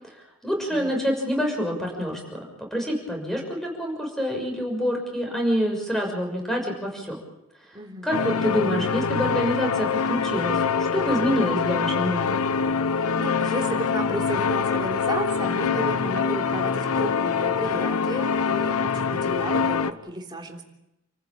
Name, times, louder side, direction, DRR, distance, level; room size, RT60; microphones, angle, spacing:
voice 1, 0.1-2.4 2.7-7.2 8.0-12.4, equal, ahead, 1 dB, 6.3 m, -27 dB
voice 2, 0.7-1.3 7.7-8.1 12.9-20.6, right 1 dB, 20° right, 2 dB, 3.6 m, -33 dB
sound 1, 8.1-19.9, left 5 dB, 85° left, 1.0 m, -24 dB
29.5 x 15.0 x 8.7 m, 0.89 s
head